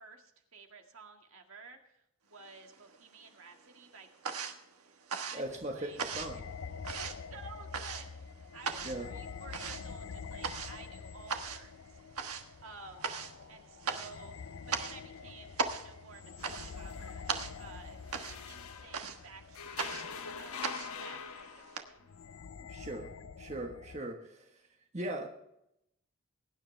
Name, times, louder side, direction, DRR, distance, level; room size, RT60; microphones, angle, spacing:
voice 1, 0.0-4.5 4.9-6.0 6.9-12.0 12.6-13.1 13.5-17.3 17.6-18.0 18.5-22.1, right 4 dB, 70° right, 3 dB, 2.0 m, -53 dB
sound 1, 2.5-3.3 3.5-21.8, right 5 dB, 85° right, 1.3 m, -39 dB
voice 2, 5.3-6.4 8.8-9.1 22.7-23.1 23.4-24.5 24.9-25.3, right 1 dB, 30° right, 2 dB, 1.3 m, -39 dB
sound 2, 5.4-24.0, left 5 dB, 65° left, 0.5 m, -47 dB
sound 3, 16.4-19.2 19.5-22.0, left 6 dB, 80° left, 1.1 m, -45 dB
22.0 x 9.9 x 3.3 m, 0.80 s
head